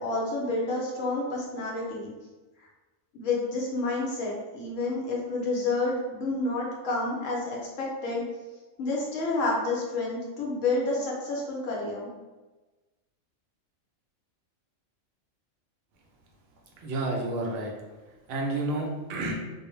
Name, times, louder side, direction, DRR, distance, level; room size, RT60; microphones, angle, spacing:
voice 1, 0.0-2.1 3.1-8.2 8.8-12.1, left 2 dB, 75° left, -3 dB, 1.0 m, -29 dB
voice 2, 16.8-17.7 18.3-19.3, right 2 dB, 60° right, -1 dB, 0.6 m, -30 dB
2.5 x 2.0 x 3.0 m, 1.2 s
omnidirectional pair, 1.4 m